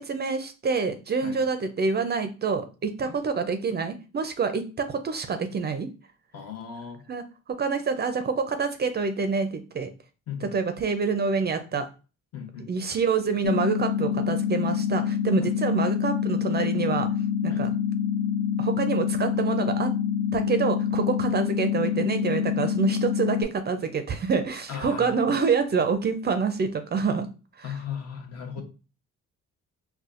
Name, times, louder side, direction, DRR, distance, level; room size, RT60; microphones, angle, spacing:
voice 1, 0.0-5.9 7.1-7.2 7.6-9.9 10.4-11.9 12.6-17.1 17.4-17.7 18.6-19.9 20.3-27.3 27.6-27.7, right 5 dB, 35° right, 0.4 m, -27 dB
voice 2, 6.3-7.0 10.3-10.5 12.3-12.7 15.5-15.6 17.5-17.7 24.7-25.3 27.6-28.6, left 7 dB, 55° left, 0.9 m, -37 dB
sound 1, 13.4-23.4, left 8 dB, 90° left, 0.5 m, -26 dB
4.1 x 2.2 x 2.4 m
cardioid pair, 90°, 30 cm